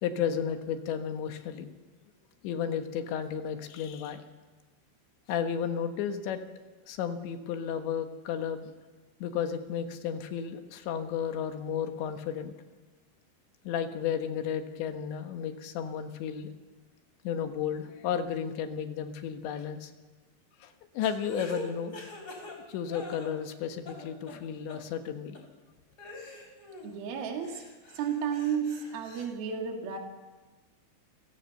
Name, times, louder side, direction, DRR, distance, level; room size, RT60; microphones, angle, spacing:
voice 1, 0.0-1.7 2.4-4.2 5.3-6.4 6.9-8.7 9.2-12.5 13.7-16.5 17.3-19.9 20.6-22.0 22.4-25.4, left 8 dB, 80° left, 7 dB, 3.7 m, -33 dB
sound 1, 21.0-23.6 23.8-24.4 24.7-24.8 25.3-25.4 26.0-27.0 27.4-29.3, left 1 dB, 20° left, 3.8 m, -43 dB
voice 2, 26.8-27.6 27.9-30.0, right 7 dB, 60° right, 2 dB, 4.0 m, -32 dB
29.0 x 16.5 x 6.7 m, 1.3 s
omnidirectional pair, 5.1 m